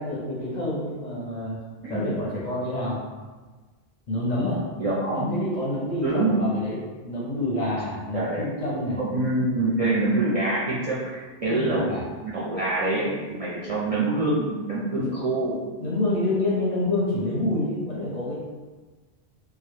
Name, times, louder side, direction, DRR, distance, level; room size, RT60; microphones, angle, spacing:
voice 1, 0.0-1.6 1.9-3.0 4.1-4.6 5.1-6.8 7.0-9.0 11.4-12.0 15.0-15.1 15.8-18.4, left 1 dB, 50° left, -6 dB, 0.6 m, -27 dB
voice 2, 4.8-5.3 6.0-6.4 8.1-8.5 9.0-12.0 12.2-15.6, right 2 dB, 50° right, -9 dB, 0.4 m, -25 dB
2.2 x 2.0 x 2.9 m, 1.3 s
omnidirectional pair, 1.0 m